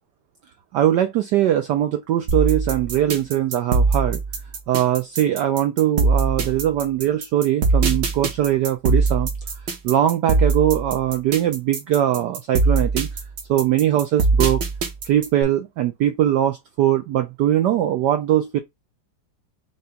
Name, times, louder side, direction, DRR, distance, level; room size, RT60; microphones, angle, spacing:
voice 1, 0.7-4.2 4.7-9.3 9.8-13.1 13.5-14.6 15.0-18.6, right 12 dB, 75° right, 0.9 m, -21 dB
sound 1, 2.3-15.4, right 3 dB, 60° right, 1.6 m, -21 dB
5.7 x 2.2 x 3.7 m
omnidirectional pair, 2.4 m